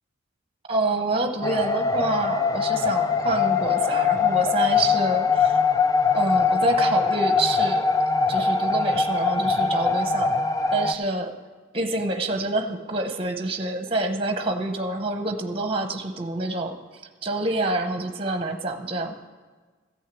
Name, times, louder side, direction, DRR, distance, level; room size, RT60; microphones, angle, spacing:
voice 1, 0.7-5.6 6.1-7.8 8.3-10.3 10.7-11.3 11.7-16.8 17.2-19.2, right 2 dB, 30° right, 7 dB, 0.9 m, -27 dB
sound 1, 1.4-10.9, left 5 dB, 15° left, 0.3 m, -22 dB
14.0 x 6.4 x 8.4 m, 1.4 s
head